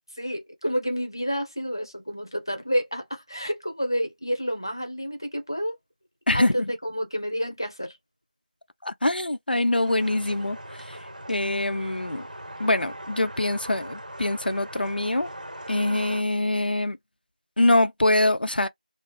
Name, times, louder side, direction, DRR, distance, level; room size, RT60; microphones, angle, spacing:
voice 1, 0.1-5.8 6.3-8.0, equal, 25° left, 0.5 m, -29 dB
voice 2, 6.3-6.7 8.8-11.0 11.3-12.2 12.6-15.3 15.7-17.0 17.6-18.7, left 2 dB, 85° left, 0.3 m, -24 dB
sound 1, 9.9-16.2, right 1 dB, 55° right, 0.6 m, -40 dB
2.4 x 2.2 x 2.3 m
figure-of-eight pair, 175°, 5 cm